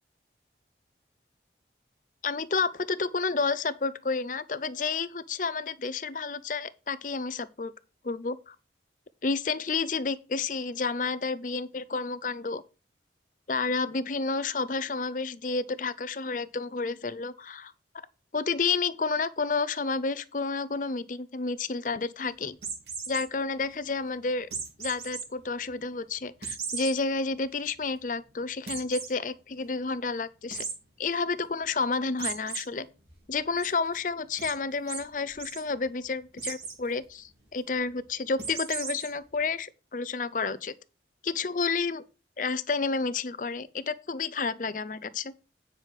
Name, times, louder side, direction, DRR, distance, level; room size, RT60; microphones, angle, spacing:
voice 1, 2.2-7.7 8.0-8.6 9.2-12.6 13.5-17.7 18.3-22.6 23.1-24.5 24.8-30.6 31.0-32.9 33.3-40.7 41.2-42.0 42.4-45.3, left 4 dB, 45° left, 0.6 m, -30 dB
sound 1, 22.6-23.2 24.5-25.2 25.7-25.8 26.4-26.9 27.4-27.5 27.8-27.9 28.7-29.1 30.5-30.7 32.2-32.6 33.1-33.7 34.4-34.5 34.9-35.0 35.3-35.6 36.4-36.8 38.4-39.1, right 5 dB, 65° right, 3.3 m, -35 dB
9.2 x 6.1 x 4.8 m
head